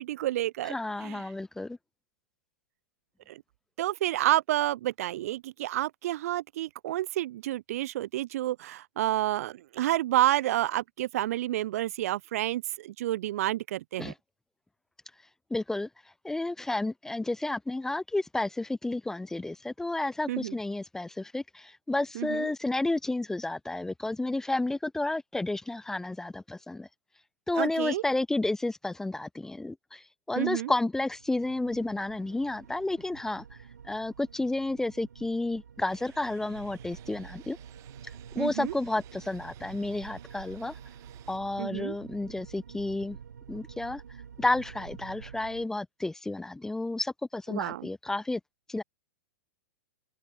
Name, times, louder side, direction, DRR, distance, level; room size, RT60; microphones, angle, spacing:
voice 1, 0.0-0.7 1.0-1.2 3.3-3.4 3.8-14.1 20.3-20.5 22.2-22.5 27.6-28.0 30.4-30.7 38.4-38.7 41.6-42.0 47.5-47.9, right 14 dB, 60° right, 0.4 m, -29 dB
voice 2, 0.6-1.8 14.0-14.1 15.5-15.9 16.2-26.9 27.5-33.4 33.9-37.6 38.4-40.7 41.3-43.2 43.5-44.0 44.4-48.4 48.7-48.8, left 2 dB, 5° left, 0.4 m, -31 dB
sound 1, 31.1-45.7, right 7 dB, 85° right, 1.2 m, -48 dB
sound 2, 35.9-41.4, right 17 dB, 35° right, 7.4 m, -57 dB
hypercardioid pair, 115°, 9 cm